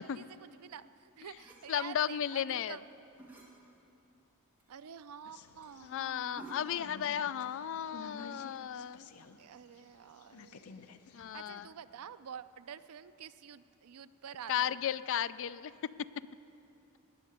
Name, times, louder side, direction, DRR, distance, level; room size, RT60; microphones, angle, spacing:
voice 1, 0.0-2.8 4.7-7.3 9.4-10.7 11.1-14.7, right 8 dB, 80° right, 13 dB, 0.5 m, -49 dB
sound 1, 1.2-1.7 3.0-3.5 4.1-4.2 4.6-4.7 5.0-5.1 5.6-5.8 6.2-6.9, right 2 dB, 10° right, 2.2 m, -53 dB
voice 2, 1.7-2.8 5.8-9.1 11.1-11.7 14.5-15.7, left 9 dB, 60° left, 16 dB, 0.3 m, -34 dB
sound 2, 5.2-9.4 9.8-11.6, left 4 dB, 85° left, 0.7 m, -52 dB
18.5 x 6.6 x 9.3 m, 2.8 s
head